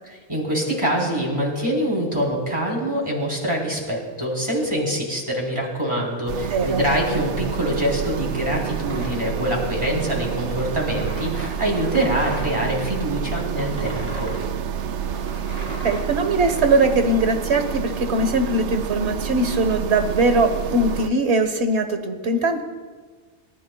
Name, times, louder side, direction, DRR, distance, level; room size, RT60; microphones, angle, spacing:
voice 1, 0.3-14.3, equal, 25° right, -2 dB, 3.9 m, -24 dB
sound 1, 6.3-21.1, right 8 dB, 90° right, 1.0 m, -29 dB
voice 2, 6.5-6.8 15.8-22.6, right 2 dB, 70° right, 7 dB, 1.6 m, -21 dB
sound 2, 8.9-12.6 13.1-16.6, equal, 45° right, 4.4 m, -37 dB
29.0 x 14.5 x 2.3 m, 1.5 s
omnidirectional pair, 1.2 m